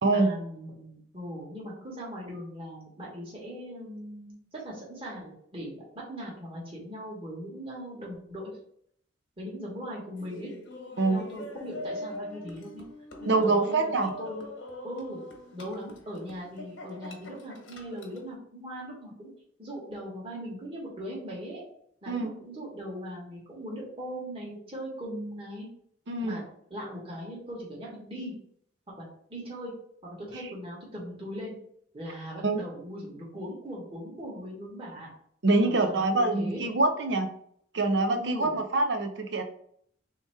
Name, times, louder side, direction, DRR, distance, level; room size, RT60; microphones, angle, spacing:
voice 1, 0.0-8.5 9.4-10.5 11.1-12.8 13.2-14.5 14.8-15.2 15.5-19.3 19.6-21.6 22.0-25.7 26.2-26.4 26.7-28.3 29.0-29.7 30.3-31.5 31.9-35.1 35.6-36.6 38.1-38.5, equal, 30° right, -5 dB, 1.3 m, -39 dB
Laughter, 10.2-18.3, left 1 dB, 90° left, 1.0 m, -42 dB
voice 2, 13.3-14.1 22.1-22.3 26.1-26.4 32.4-32.6 35.4-37.3 37.7-39.4, right 2 dB, 65° right, 6 dB, 0.6 m, -25 dB
3.5 x 2.9 x 4.4 m, 0.66 s
head